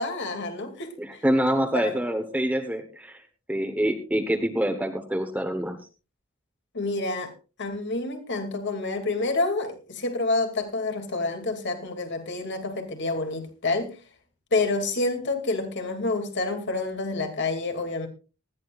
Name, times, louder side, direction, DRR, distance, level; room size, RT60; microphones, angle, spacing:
voice 1, 0.0-1.2 1.7-1.9 6.7-7.3 7.6-14.0 14.5-18.1, left 3 dB, 55° left, 6 dB, 2.7 m, -28 dB
voice 2, 1.0-3.2 3.5-5.8, right 1 dB, 5° right, 3 dB, 1.3 m, -26 dB
19.0 x 14.0 x 2.5 m, 0.33 s
head